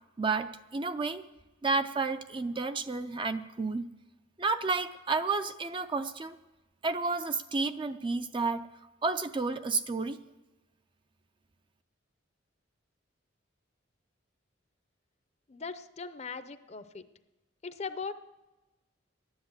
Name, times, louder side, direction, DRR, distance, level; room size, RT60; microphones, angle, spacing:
voice 1, 0.2-1.2 1.6-3.8 4.4-6.4 6.8-8.7 9.0-10.2, right 4 dB, 25° right, 10 dB, 0.4 m, -31 dB
voice 2, 15.5-17.0 17.6-18.1, left 4 dB, 35° left, 12 dB, 0.6 m, -39 dB
12.5 x 10.0 x 8.0 m, 1.1 s
head